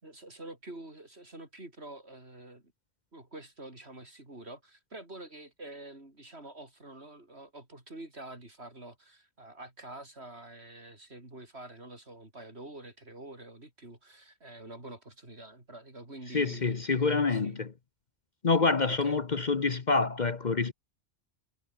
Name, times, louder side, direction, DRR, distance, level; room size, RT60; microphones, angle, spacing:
voice 1, 0.0-2.7 3.1-17.6 18.9-19.2, right 2 dB, 60° right, 5.7 m, -47 dB
voice 2, 16.3-17.7 18.4-20.7, left 4 dB, 40° left, 1.1 m, -27 dB
omnidirectional pair, 1.2 m